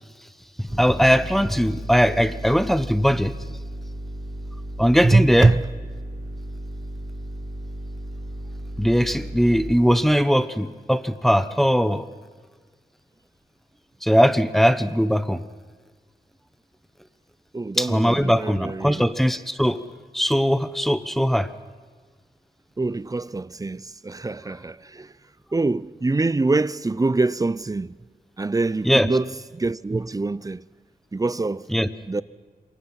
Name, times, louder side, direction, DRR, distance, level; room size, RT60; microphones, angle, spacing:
voice 1, 0.6-3.3 4.8-5.5 8.8-12.0 14.0-15.4 17.8-19.8 20.1-21.5 28.8-29.1 31.7-31.9, equal, ahead, 1.0 m, -20 dB
sound 1, 0.7-9.7, right 1 dB, 60° right, 6.3 m, -35 dB
voice 2, 5.0-5.7 17.5-19.0 22.8-25.1 25.5-27.9 28.4-30.6 31.1-31.7 32.1-32.2, right 3 dB, 20° right, 0.6 m, -24 dB
27.0 x 23.0 x 5.8 m
cardioid pair, 70°, 16 cm